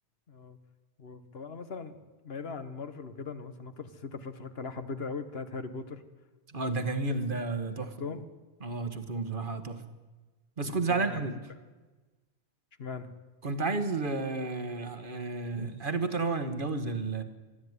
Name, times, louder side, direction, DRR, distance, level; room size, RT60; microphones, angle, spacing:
voice 1, 1.0-2.0 2.2-6.0 7.8-8.3 10.6-11.2 12.8-13.1, left 4 dB, 60° left, 10 dB, 1.4 m, -39 dB
voice 2, 6.5-7.9 8.6-9.8 10.6-11.3 13.4-17.2, right 3 dB, 50° right, 9 dB, 1.5 m, -31 dB
22.5 x 12.5 x 9.6 m, 1.2 s
omnidirectional pair, 1.2 m